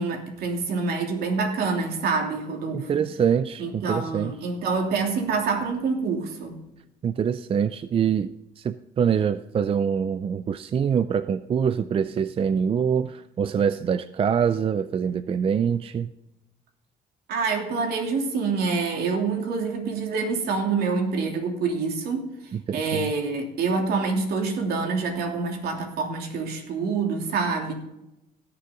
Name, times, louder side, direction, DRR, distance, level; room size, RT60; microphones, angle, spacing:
voice 1, 0.0-3.0 3.6-6.6 17.3-22.3 22.7-27.7, right 4 dB, 70° right, 2 dB, 3.0 m, -26 dB
voice 2, 2.7-4.3 7.0-16.1 22.5-23.1, right 7 dB, 35° right, 13 dB, 0.4 m, -25 dB
17.5 x 6.8 x 3.8 m, 0.87 s
cardioid pair, 110°, 17 cm